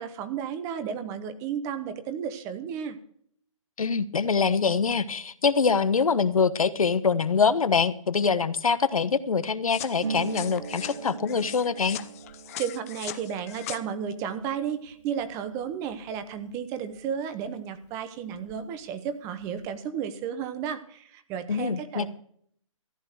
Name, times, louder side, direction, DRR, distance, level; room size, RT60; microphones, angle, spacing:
voice 1, 0.0-3.0 12.6-22.1, right 8 dB, 15° right, 11 dB, 1.0 m, -33 dB
voice 2, 3.8-12.0 21.5-22.1, left 5 dB, 85° left, 13 dB, 1.2 m, -24 dB
sound 1, 9.7-13.8, left 13 dB, 25° left, 0.7 m, -40 dB
Harp, 10.0-17.5 17.7-18.9 19.1-19.8, right 7 dB, 55° right, 1.1 m, -42 dB
14.5 x 10.5 x 6.4 m, 0.62 s
hypercardioid pair, 160°, 18 cm